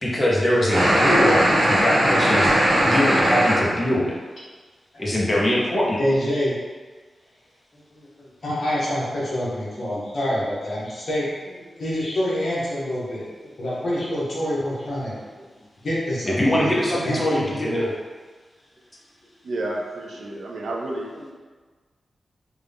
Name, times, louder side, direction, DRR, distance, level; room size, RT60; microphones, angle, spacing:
voice 1, 0.0-2.5 2.8-4.2 5.0-6.0 7.9-8.3 11.7-11.8 13.4-13.5 16.4-17.9 20.2-20.3, left 1 dB, 15° left, -5 dB, 0.7 m, -23 dB
sound 1, 0.7-3.6, equal, 50° right, 1.0 m, -18 dB
voice 2, 6.0-6.6 8.4-11.3 11.8-13.2 13.6-15.1 15.8-17.9, equal, 50° left, -8 dB, 1.1 m, -26 dB
voice 3, 19.4-21.1, right 2 dB, 70° right, 0 dB, 0.4 m, -30 dB
3.6 x 2.3 x 3.4 m, 1.4 s
wide cardioid pair, 170°, 0 cm